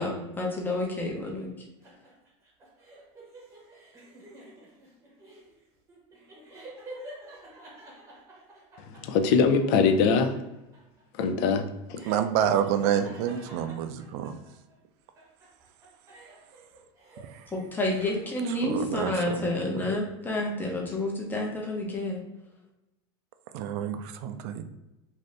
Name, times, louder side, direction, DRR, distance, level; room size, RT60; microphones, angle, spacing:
voice 1, 0.0-1.5 17.5-22.2, left 1 dB, 15° left, -1 dB, 0.7 m, -29 dB
sound 1, 1.8-14.8 15.2-17.4 17.7-18.6, right 1 dB, 20° right, 0.9 m, -49 dB
voice 2, 8.9-10.4 11.2-12.1, left 5 dB, 60° left, 7 dB, 0.5 m, -23 dB
voice 3, 12.1-14.4 17.3-17.4 18.6-19.9 23.5-24.6, right 9 dB, 60° right, 9 dB, 0.4 m, -28 dB
2.7 x 2.6 x 3.2 m, 0.97 s
supercardioid pair, 135°, 15 cm